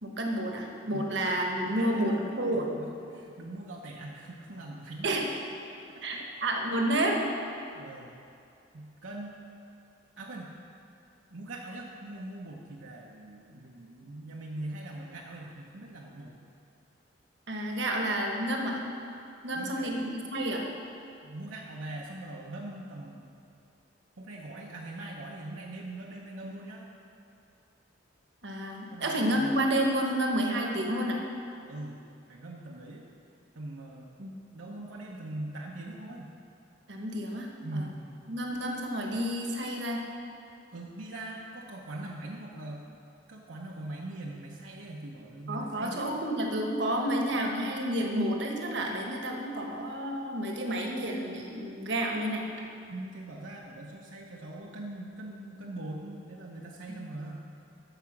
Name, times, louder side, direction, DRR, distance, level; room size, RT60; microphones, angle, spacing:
voice 1, 0.0-2.7 5.0-5.3 6.0-7.2 17.5-18.8 19.4-20.7 28.4-31.2 34.2-34.4 36.9-37.8 38.3-40.0 45.5-52.5 56.9-57.0, right 1 dB, 60° right, 1 dB, 1.2 m, -30 dB
voice 2, 1.6-5.2 5.9-6.3 6.7-6.8 7.7-8.1 8.7-9.4 10.2-10.5 11.3-16.4 19.5-19.9 21.2-23.4 24.2-26.9 28.9-29.5 31.7-32.0 32.3-33.1 33.5-34.1 34.5-36.3 37.6-38.1 40.7-42.9 43.3-46.2 52.9-57.5, right 1 dB, 80° right, -2 dB, 0.9 m, -42 dB
13.5 x 5.0 x 5.9 m, 2.5 s
head